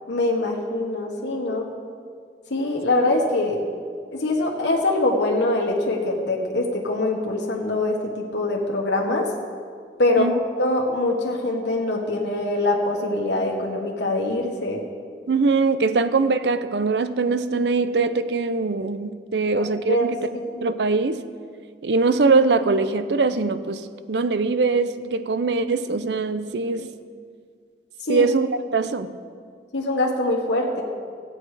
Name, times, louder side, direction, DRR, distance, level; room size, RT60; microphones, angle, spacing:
voice 1, 0.1-1.7 2.5-3.6 4.1-9.3 10.0-10.3 10.6-14.8 19.6-20.1 20.5-20.6 28.0-28.3 29.7-30.8, left 2 dB, 85° left, -1 dB, 1.3 m, -23 dB
voice 2, 15.3-20.2 20.6-21.2 21.8-26.9 28.1-28.5 28.7-29.2, right 4 dB, 75° right, 12 dB, 0.6 m, -22 dB
14.5 x 8.6 x 4.8 m, 2.1 s
head